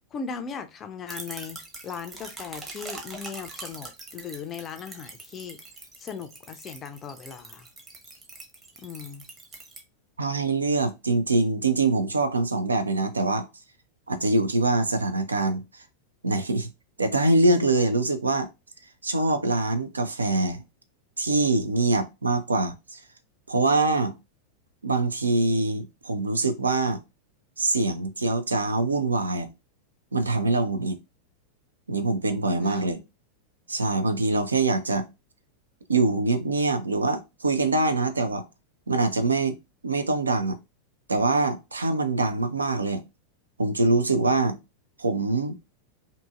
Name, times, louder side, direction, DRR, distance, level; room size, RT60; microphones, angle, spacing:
voice 1, 0.1-5.6 6.0-7.7 8.8-9.3 32.6-32.8, left 6 dB, 25° left, 0.4 m, -38 dB
sound 1, 1.1-9.8, right 3 dB, 20° right, 0.8 m, -43 dB
voice 2, 10.2-13.5 14.1-15.6 16.2-16.7 17.0-18.5 19.0-20.6 21.2-23.0 23.5-24.2 24.8-27.0 27.6-29.5 30.1-31.0 31.9-33.0 33.7-35.1 35.9-38.4 38.9-39.6 39.8-40.6 41.1-43.0 43.6-44.6 45.0-45.5, right 2 dB, 75° right, 0.4 m, -24 dB
2.7 x 2.6 x 2.3 m
figure-of-eight pair, 90°, 0 cm